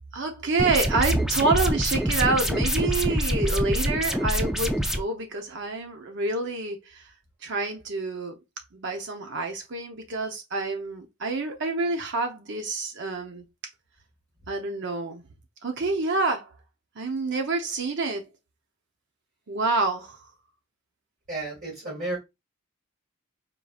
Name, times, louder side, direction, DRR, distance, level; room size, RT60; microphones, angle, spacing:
voice 1, 0.1-7.1 7.4-8.3 8.7-13.4 14.5-15.2 15.6-16.5 17.0-18.3 19.5-20.2, right 3 dB, 55° right, 0.7 m, -27 dB
sound 1, 0.6-5.0, equal, ahead, 0.4 m, -25 dB
voice 2, 21.3-22.2, right 2 dB, 40° right, 1.8 m, -32 dB
5.0 x 3.7 x 2.3 m
head